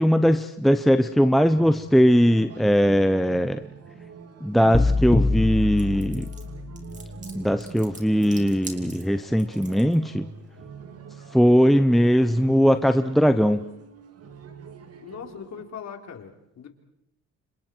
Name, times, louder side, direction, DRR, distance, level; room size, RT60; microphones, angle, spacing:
voice 1, 0.0-3.6 4.4-6.2 7.3-10.3 11.3-13.6, equal, ahead, 9 dB, 0.9 m, -20 dB
sound 1, 1.5-15.6, right 5 dB, 55° right, 2.4 m, -43 dB
sound 2, 4.7-6.9, left 3 dB, 20° left, 1.8 m, -24 dB
sound 3, 5.8-9.9, right 2 dB, 25° right, 3.9 m, -43 dB
voice 2, 15.0-16.7, left 7 dB, 65° left, 4 dB, 3.7 m, -40 dB
30.0 x 27.0 x 4.6 m, 0.78 s
cardioid pair, 90°, 30 cm